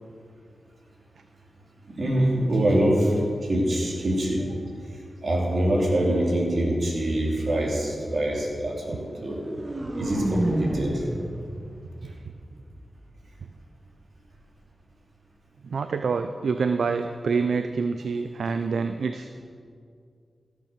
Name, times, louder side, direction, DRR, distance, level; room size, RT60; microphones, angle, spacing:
voice 1, 1.9-3.2 3.4-4.6 4.9-9.4 9.9-11.1, right 1 dB, 65° right, -2 dB, 3.0 m, -24 dB
sound 1, 9.2-13.2, right 1 dB, 30° right, 1.5 m, -31 dB
voice 2, 15.6-19.4, right 5 dB, 80° right, 8 dB, 0.4 m, -27 dB
15.5 x 6.6 x 6.7 m, 2.2 s
cardioid pair, 45°, 0 cm